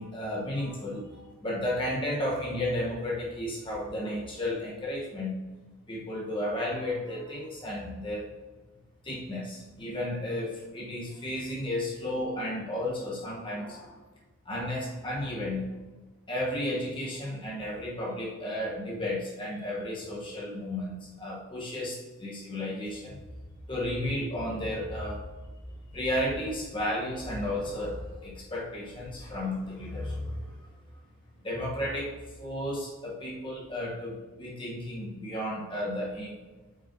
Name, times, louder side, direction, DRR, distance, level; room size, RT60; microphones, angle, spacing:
voice 1, 0.0-5.4 5.9-8.3 9.0-14.0 14.5-15.7 16.3-23.2 23.7-25.2 25.9-30.5 31.4-36.4, left 1 dB, 25° left, -4 dB, 1.7 m, -33 dB
8.5 x 5.8 x 3.1 m, 1.2 s
head